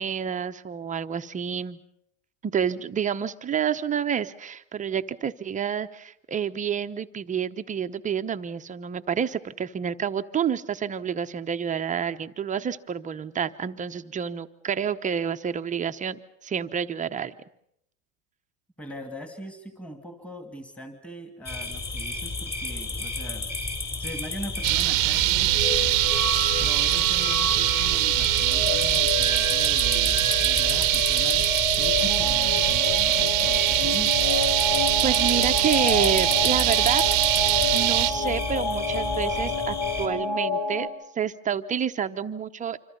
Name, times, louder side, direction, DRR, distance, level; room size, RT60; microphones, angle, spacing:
voice 1, 0.0-1.8 2.4-17.4 35.0-37.0 37.7-40.9 41.1-42.8, right 8 dB, 20° right, 9 dB, 0.9 m, -29 dB
voice 2, 18.8-23.5 24.0-25.5 26.6-31.5 31.8-34.1, equal, 5° left, 6 dB, 2.7 m, -41 dB
sound 1, 21.4-40.1, left 3 dB, 25° left, 5.8 m, -32 dB
sound 2, 24.6-38.1, right 25 dB, 55° right, 0.9 m, -23 dB
sound 3, 25.4-40.9, left 4 dB, 70° left, 4.3 m, -30 dB
26.5 x 26.0 x 5.4 m, 0.73 s
supercardioid pair, 130°, 38 cm